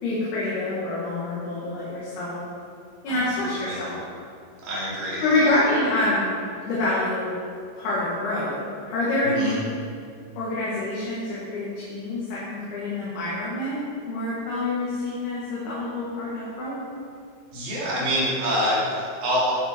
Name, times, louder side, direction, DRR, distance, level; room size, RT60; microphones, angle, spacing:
voice 1, 0.0-2.4 3.0-4.0 5.2-6.3 6.7-7.3 7.8-8.6 8.9-9.7 10.4-16.8, left 2 dB, 55° left, -9 dB, 3.6 m, -26 dB
voice 2, 3.1-3.8 4.6-5.5 9.2-9.5 17.5-19.5, equal, 40° right, -7 dB, 4.0 m, -26 dB
12.0 x 9.6 x 4.7 m, 2.3 s
omnidirectional pair, 5.9 m